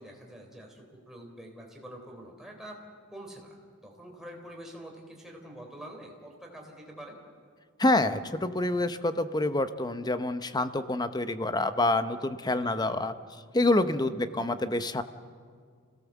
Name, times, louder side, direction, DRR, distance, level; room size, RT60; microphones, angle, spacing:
voice 1, 0.0-2.8 3.1-7.2 12.5-12.8 14.0-14.3, right 1 dB, ahead, 0 dB, 3.6 m, -46 dB
voice 2, 7.8-13.1 13.5-15.0, left 2 dB, 20° left, 11 dB, 0.7 m, -27 dB
27.0 x 17.5 x 7.2 m, 2.1 s
head